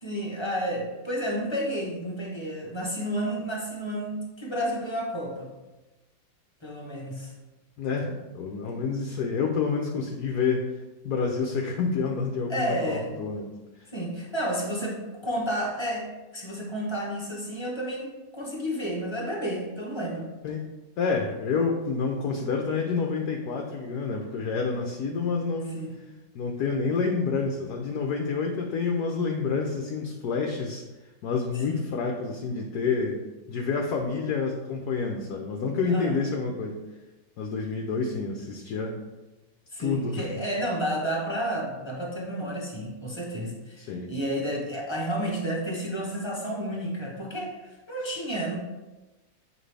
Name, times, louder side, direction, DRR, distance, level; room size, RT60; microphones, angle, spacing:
voice 1, 0.0-5.5 6.6-7.3 8.7-8.8 12.5-13.1 13.9-16.1 16.3-20.3 25.7-25.9 31.5-31.9 35.9-36.2 39.7-48.6, equal, 20° left, -2 dB, 0.8 m, -31 dB
voice 2, 7.8-10.7 11.0-13.5 20.4-20.7 21.0-25.7 26.3-30.8 31.2-33.2 33.5-36.8 37.4-38.9 39.8-40.3 43.8-44.1, left 4 dB, 65° left, 2 dB, 1.1 m, -28 dB
7.6 x 5.1 x 3.3 m, 1.1 s
omnidirectional pair, 2.0 m